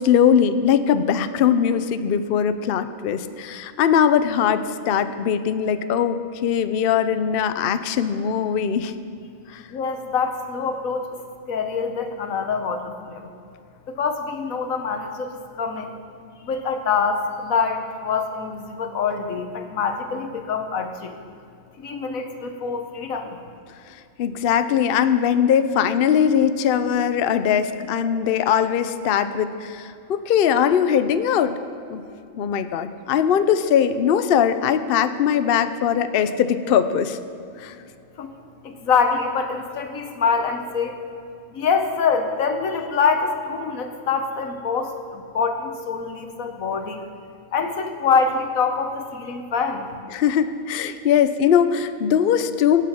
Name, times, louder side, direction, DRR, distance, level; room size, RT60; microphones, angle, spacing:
voice 1, 0.0-8.9 9.5-9.6 24.2-31.6 31.9-32.0 32.4-37.2 37.6-37.8 50.1-52.8, left 8 dB, 60° left, 11 dB, 0.7 m, -20 dB
voice 2, 9.7-11.2 11.5-13.3 13.9-15.3 15.6-16.0 16.4-21.1 21.8-23.4 38.2-38.3 38.6-40.9 41.5-47.0 47.5-49.9, left 5 dB, 85° left, 6 dB, 1.5 m, -25 dB
17.0 x 8.3 x 5.9 m, 2.5 s
omnidirectional pair, 1.4 m